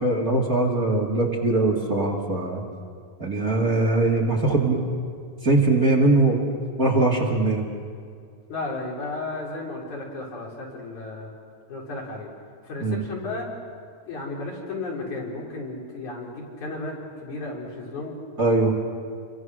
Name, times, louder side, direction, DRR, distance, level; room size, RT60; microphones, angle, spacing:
voice 1, 0.0-2.6 3.2-4.8 5.4-6.5 6.8-7.6 12.8-13.0 18.4-18.7, right 2 dB, 30° right, 0 dB, 2.6 m, -21 dB
voice 2, 8.5-11.3 11.7-12.3 12.6-13.5 14.1-18.2, left 2 dB, 75° left, -2 dB, 5.2 m, -34 dB
29.0 x 23.5 x 6.3 m, 2.2 s
omnidirectional pair, 3.4 m